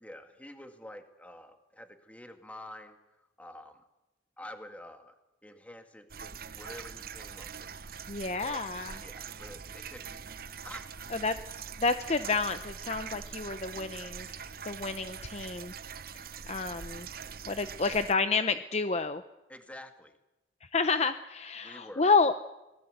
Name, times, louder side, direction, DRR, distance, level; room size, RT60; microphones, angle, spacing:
voice 1, 0.0-3.8 4.4-7.7 8.4-8.6 9.0-10.9 19.5-20.2 21.6-22.1, left 1 dB, 10° left, 6 dB, 2.1 m, -48 dB
sound 1, 6.1-18.1, right 6 dB, 55° right, 0.9 m, -43 dB
voice 2, 8.1-9.0 11.1-11.4 11.8-14.3 14.6-15.7 16.5-17.1 17.4-19.2 20.7-22.3, left 4 dB, 35° left, 10 dB, 0.7 m, -29 dB
26.5 x 20.0 x 8.1 m, 1.0 s
head